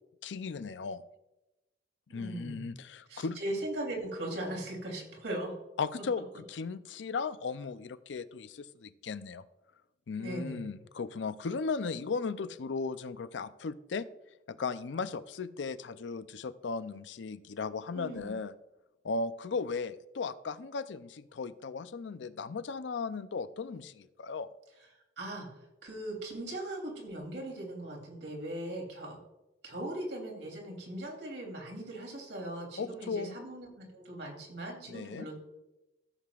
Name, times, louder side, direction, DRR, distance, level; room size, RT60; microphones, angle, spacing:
voice 1, 0.2-1.0 2.1-3.4 5.8-9.4 10.1-14.1 14.5-18.5 19.0-24.5 32.8-33.4 34.9-35.3, left 4 dB, 90° left, 14 dB, 0.5 m, -36 dB
voice 2, 2.1-2.7 3.1-5.6 10.2-10.6 17.9-18.3 24.9-25.5 25.8-29.2 29.6-35.3, right 1 dB, 80° right, -1 dB, 3.1 m, -39 dB
14.5 x 7.6 x 2.4 m, 0.99 s
head